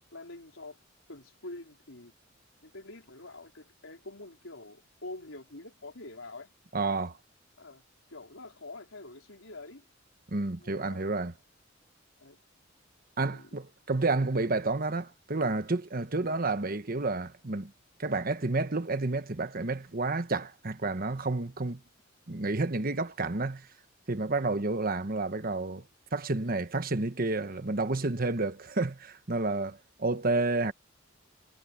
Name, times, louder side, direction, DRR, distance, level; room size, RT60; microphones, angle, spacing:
voice 1, 0.1-0.8 1.1-2.1 2.6-6.5 7.6-7.8 8.1-9.8 10.6-11.3 12.2-12.4 13.3-13.5, left 2 dB, 85° left, 4.3 m, -46 dB
voice 2, 6.7-7.2 10.3-11.3 13.2-17.7 18.0-21.8 22.3-23.7 24.1-25.8 26.1-30.7, right 3 dB, 45° right, 1.2 m, -30 dB
head